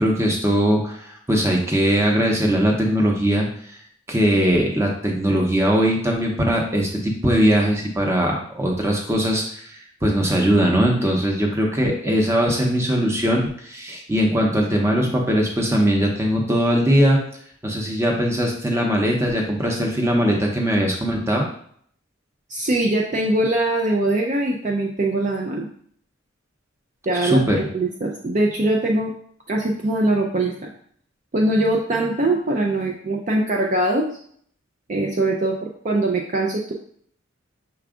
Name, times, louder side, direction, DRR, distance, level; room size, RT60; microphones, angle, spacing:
voice 1, 0.0-3.8 4.1-17.2 17.6-21.4 27.2-27.7, equal, 15° right, 0 dB, 0.7 m, -20 dB
voice 2, 22.5-25.7 27.1-29.1 29.5-30.7 31.3-34.1 34.9-36.7, right 2 dB, 40° right, 0 dB, 0.4 m, -22 dB
5.8 x 2.3 x 3.6 m, 0.63 s
head